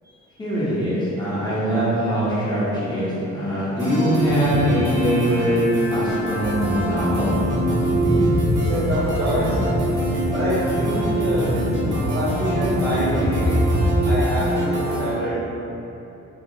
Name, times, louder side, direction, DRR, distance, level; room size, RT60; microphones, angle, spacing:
voice 1, 0.4-5.6 5.9-7.3, equal, 15° left, -11 dB, 0.9 m, -22 dB
sound 1, 3.8-15.1, right 1 dB, 85° right, 0.8 m, -25 dB
sound 2, 4.2-5.1 5.5-5.6 6.2-14.2, equal, 10° right, 0.6 m, -25 dB
sound 3, 6.4-12.9, equal, 80° left, 0.7 m, -30 dB
voice 2, 8.5-9.6 10.3-11.5 12.1-13.6 14.0-15.4, equal, 35° right, -9 dB, 0.9 m, -26 dB
2.8 x 2.6 x 2.7 m, 2.9 s
cardioid pair, 90°, 30 cm